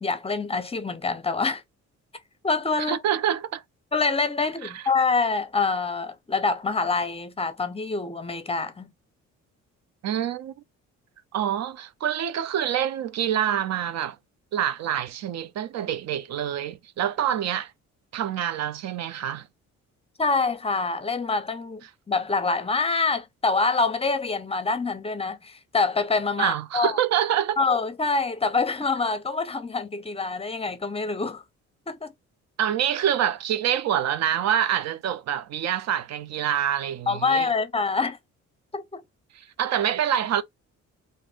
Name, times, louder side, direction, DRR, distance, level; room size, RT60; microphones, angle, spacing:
voice 1, 0.0-1.6 2.4-3.0 3.9-8.9 20.2-21.8 22.1-27.0 27.6-31.4 31.9-32.1 37.1-38.2 38.7-39.0, left 4 dB, 20° left, 0.6 m, -26 dB
voice 2, 2.8-3.6 4.6-4.8 10.0-10.5 11.3-14.2 14.5-17.7 18.1-19.5 26.4-27.6 32.6-37.5 39.3-40.4, right 10 dB, 60° right, 0.5 m, -26 dB
2.6 x 2.5 x 3.4 m
cardioid pair, 90°, 30 cm